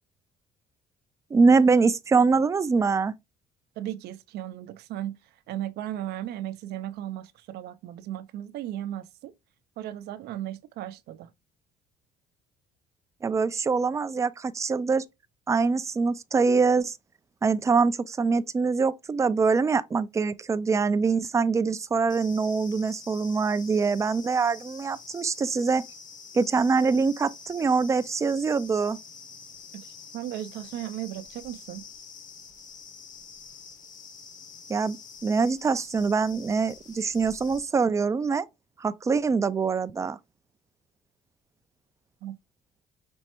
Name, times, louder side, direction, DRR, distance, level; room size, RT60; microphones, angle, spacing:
voice 1, 1.3-3.1 13.2-15.0 15.5-17.0 17.4-25.8 26.3-29.0 34.7-35.0 35.2-38.5 38.8-40.2, right 4 dB, 20° right, 0.3 m, -24 dB
voice 2, 3.8-5.2 5.5-9.3 9.8-11.3 29.7-29.9 30.1-31.8 42.2-42.4, right 12 dB, 75° right, 0.5 m, -36 dB
sound 1, 22.1-37.6, left 5 dB, 50° left, 1.1 m, -47 dB
5.2 x 3.1 x 2.9 m
cardioid pair, 110°, 17 cm